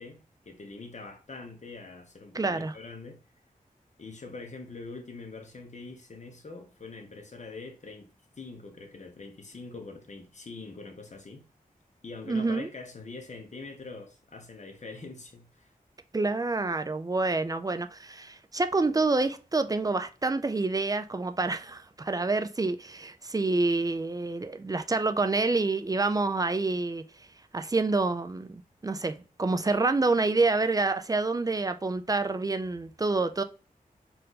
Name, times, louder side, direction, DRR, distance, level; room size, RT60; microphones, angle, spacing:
voice 1, 0.0-3.2 4.0-8.1 8.4-11.4 12.0-15.7, left 3 dB, 50° left, 1.0 m, -44 dB
voice 2, 2.3-2.7 12.3-12.7 16.1-27.0 27.5-33.4, right 3 dB, 25° right, 0.3 m, -27 dB
4.4 x 2.5 x 3.9 m
wide cardioid pair, 85°, 15 cm